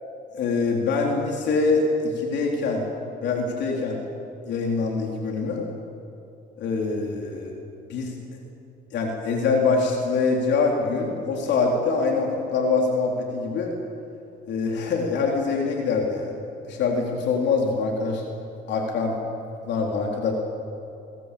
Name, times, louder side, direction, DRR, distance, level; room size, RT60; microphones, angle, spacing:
voice 1, 0.3-2.8 3.2-4.0 4.5-5.7 6.6-7.6 7.9-8.2 8.9-13.7 14.5-16.4 16.7-18.2 18.7-19.2 19.6-20.3, left 4 dB, 65° left, 0 dB, 3.9 m, -24 dB
29.5 x 22.5 x 8.6 m, 2.7 s
cardioid pair, 140°, 19 cm